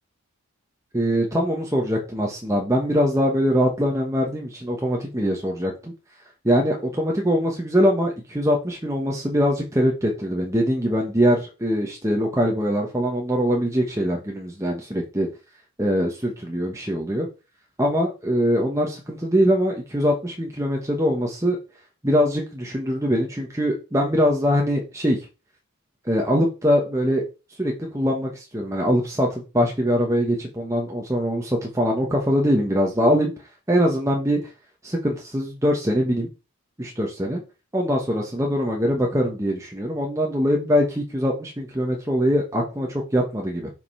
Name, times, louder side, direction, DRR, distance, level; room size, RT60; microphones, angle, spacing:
voice 1, 0.9-5.9 6.4-15.3 15.8-17.3 17.8-21.6 22.0-25.2 26.0-27.2 27.6-33.3 33.7-34.4 34.8-36.3 36.8-37.4 37.7-43.7, equal, 15° right, 0 dB, 1.1 m, -22 dB
5.7 x 5.2 x 5.5 m, 0.31 s
head